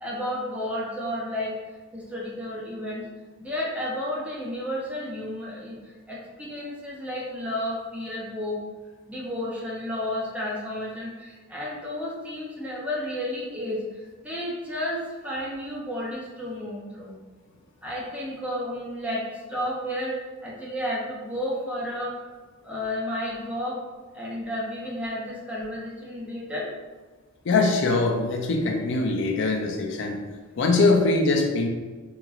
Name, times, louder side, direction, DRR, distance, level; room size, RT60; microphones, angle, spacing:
voice 1, 0.0-1.5 1.9-3.1 3.4-8.6 9.1-17.2 17.8-22.2 22.6-23.8 24.1-26.7, left 1 dB, 5° right, -5 dB, 0.7 m, -32 dB
voice 2, 27.5-30.2 30.6-31.7, left 3 dB, 60° left, 2 dB, 0.4 m, -22 dB
3.7 x 2.9 x 2.4 m, 1.3 s
head